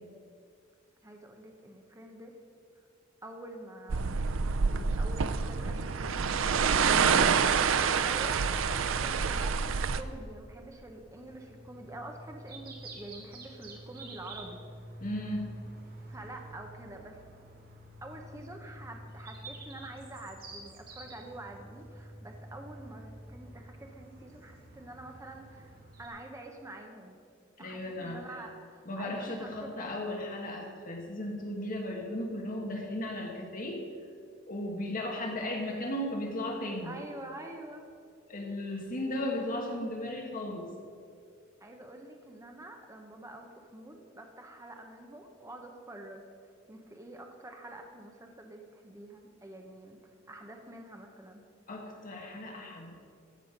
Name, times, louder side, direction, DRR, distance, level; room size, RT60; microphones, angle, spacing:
voice 1, 1.0-2.4 2.8-2.9 3.2-4.2 4.6-14.6 16.1-17.2 18.0-27.2 27.6-29.9 36.8-37.9 41.6-46.3 46.7-50.0 50.3-51.5, right 1 dB, 15° right, 3 dB, 0.9 m, -47 dB
sound 1, 3.9-10.0, right 6 dB, 80° right, 0.5 m, -27 dB
sound 2, 10.4-26.1, right 1 dB, 50° right, 1.9 m, -48 dB
voice 2, 15.0-15.5 27.6-28.2 28.8-33.8 34.5-36.9 38.3-40.7 51.7-52.9, left 1 dB, 45° left, 0 dB, 1.8 m, -36 dB
14.0 x 7.8 x 5.2 m, 2.3 s
head